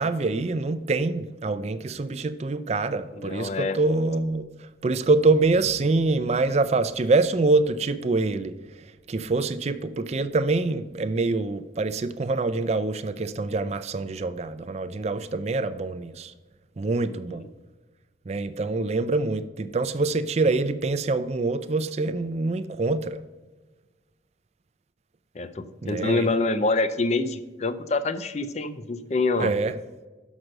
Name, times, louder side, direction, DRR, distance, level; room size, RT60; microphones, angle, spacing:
voice 1, 0.0-4.5 4.8-8.5 9.1-16.3 16.8-17.5 18.3-23.2 25.8-26.3 29.4-29.7, right 3 dB, 35° right, 0.4 m, -25 dB
voice 2, 3.2-3.8 17.0-17.5 25.3-29.5, left 3 dB, 35° left, 0.5 m, -26 dB
6.4 x 6.1 x 6.5 m
head